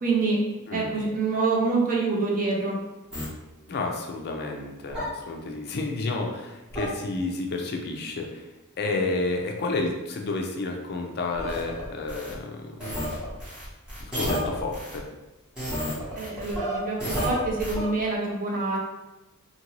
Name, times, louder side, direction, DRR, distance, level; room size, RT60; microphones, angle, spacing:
voice 1, 0.0-0.4 0.7-2.8 16.1-18.8, right 3 dB, 40° right, -2 dB, 0.6 m, -26 dB
voice 2, 0.7-1.0 3.7-8.5 8.8-12.7 14.0-15.0, left 3 dB, 45° left, 2 dB, 0.4 m, -30 dB
sound 1, 3.1-3.3 4.9-5.0 6.7-6.8 11.3-12.3 12.8-15.0 15.5-17.8, equal, 5° right, 1.1 m, -31 dB
2.9 x 2.5 x 3.0 m, 1.1 s
head